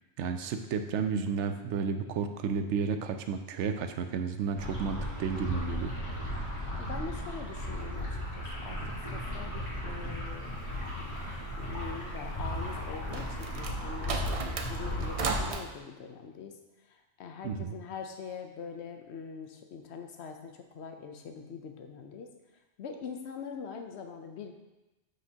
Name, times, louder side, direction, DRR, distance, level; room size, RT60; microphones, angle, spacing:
voice 1, 0.2-5.9 17.4-17.7, right 6 dB, 75° right, 7 dB, 0.9 m, -32 dB
sound 1, 4.6-15.5, equal, 25° left, 1.6 m, -36 dB
voice 2, 6.8-10.5 11.6-16.6 16.9-22.3 22.8-24.5, left 6 dB, 65° left, 5 dB, 0.9 m, -43 dB
sound 2, 12.7-15.6, right 4 dB, 55° right, 0.4 m, -36 dB
7.8 x 5.1 x 2.8 m, 1.1 s
omnidirectional pair, 1.2 m